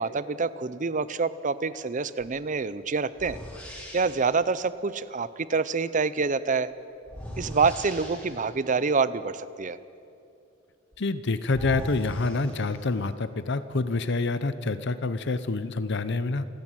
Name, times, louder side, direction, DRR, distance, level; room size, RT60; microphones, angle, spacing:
voice 1, 0.0-3.4 3.9-6.7 7.4-9.8, right 4 dB, 40° right, 16 dB, 0.7 m, -26 dB
sound 1, 2.3-2.4 3.1-4.4 7.0-8.6 10.9-11.0 11.5-13.1, equal, 5° left, 4.0 m, -40 dB
voice 2, 11.0-16.4, left 3 dB, 65° left, 13 dB, 0.8 m, -27 dB
28.0 x 10.5 x 9.0 m, 2.6 s
head